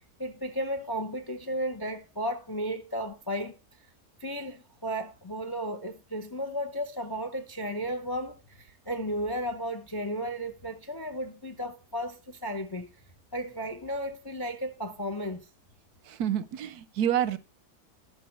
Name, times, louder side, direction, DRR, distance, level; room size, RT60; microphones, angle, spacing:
voice 1, 0.2-3.6 4.2-12.9 13.3-15.5, equal, 30° left, 0.4 m, -34 dB
voice 2, 16.0-17.4, right 10 dB, 90° right, 1.2 m, -28 dB
12.5 x 6.0 x 4.2 m
omnidirectional pair, 1.6 m